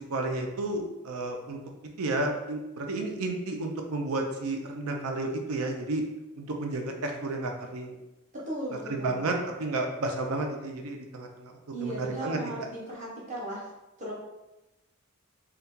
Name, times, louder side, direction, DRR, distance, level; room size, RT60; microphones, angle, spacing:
voice 1, 0.1-1.6 2.0-6.0 6.4-8.0 8.9-11.5 11.8-12.4, right 2 dB, 85° right, 3 dB, 0.5 m, -31 dB
voice 2, 8.5-9.4 11.7-13.7 14.0-14.1, right 1 dB, 35° right, -6 dB, 1.0 m, -36 dB
2.7 x 2.3 x 3.6 m, 0.97 s
head